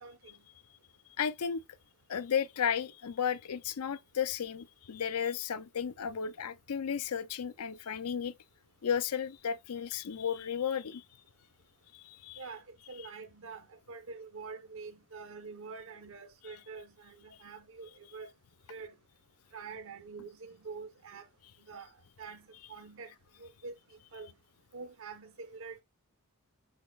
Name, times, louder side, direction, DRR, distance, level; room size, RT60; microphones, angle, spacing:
voice 1, 0.0-0.3 12.4-18.3 18.7-18.9 19.5-21.3 21.6-21.9 22.2-23.1 23.4-23.7 24.1-24.3 24.7-25.8, right 4 dB, 65° right, 1.0 m, -46 dB
voice 2, 1.2-1.6 2.1-8.3 8.8-11.0 11.9-12.4, left 7 dB, 80° left, 0.5 m, -34 dB
8.0 x 5.2 x 2.3 m
head